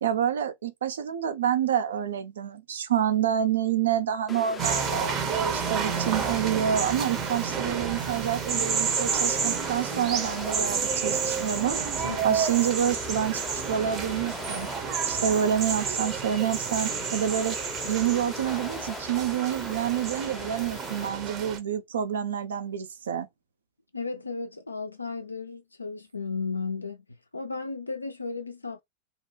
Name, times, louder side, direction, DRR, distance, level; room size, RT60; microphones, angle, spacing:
voice 1, 0.0-11.8 12.2-14.7 15.0-17.6 17.8-23.3, right 9 dB, 65° right, 0.4 m, -28 dB
sound 1, 4.3-21.1, left 5 dB, 20° left, 0.5 m, -41 dB
sound 2, 4.6-21.6, right 6 dB, 30° right, 0.7 m, -30 dB
voice 2, 12.0-12.5 23.9-27.0 27.3-28.8, left 4 dB, 80° left, 0.3 m, -34 dB
2.6 x 2.2 x 3.1 m
figure-of-eight pair, 90°, 0 cm